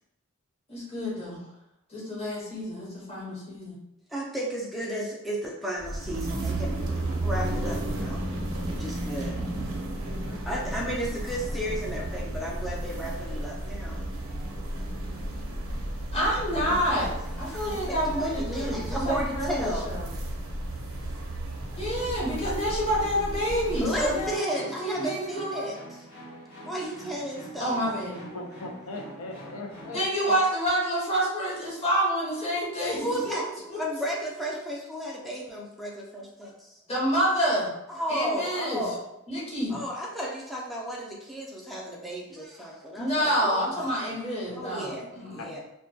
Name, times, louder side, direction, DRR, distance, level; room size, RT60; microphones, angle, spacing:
voice 1, 0.7-1.4 1.9-3.8 16.1-17.1 17.4-20.1 21.8-25.7 27.6-28.2 29.9-33.4 33.7-33.8 36.9-37.7 38.1-38.8 39.3-39.8 42.9-45.6, equal, 30° left, -6 dB, 0.8 m, -28 dB
voice 2, 4.1-6.8 7.2-8.3 8.7-9.4 10.5-14.0 17.5-19.9 23.8-26.0 26.7-27.8 33.0-36.7 37.9-39.0 39.7-43.8 44.5-45.6, equal, ahead, -3 dB, 0.3 m, -34 dB
sound 1, 5.8-24.3, right 1 dB, 85° right, 0.5 m, -33 dB
sound 2, 23.7-30.1, right 1 dB, 55° left, 1.0 m, -45 dB
voice 3, 28.3-30.3 44.1-44.2 44.9-45.5, left 2 dB, 85° left, 1 dB, 0.4 m, -40 dB
2.2 x 2.1 x 2.6 m, 0.86 s
head